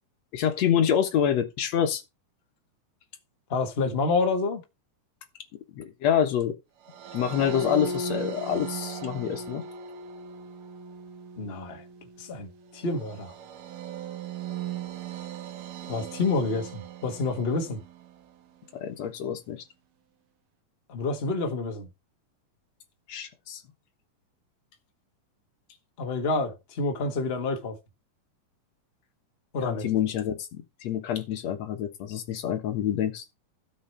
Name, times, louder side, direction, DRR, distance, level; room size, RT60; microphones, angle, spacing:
voice 1, 0.3-2.0 5.7-6.6 7.1-9.6 18.7-19.6 23.1-23.6 29.6-33.2, left 9 dB, 65° left, 2.1 m, -27 dB
voice 2, 3.5-4.6 11.4-11.8 12.2-13.3 15.9-17.8 20.9-21.9 26.0-27.8 29.5-29.9, left 3 dB, 45° left, 0.7 m, -28 dB
sound 1, 6.9-18.2, right 4 dB, 85° right, 2.9 m, -38 dB
12.5 x 6.9 x 4.4 m
omnidirectional pair, 3.7 m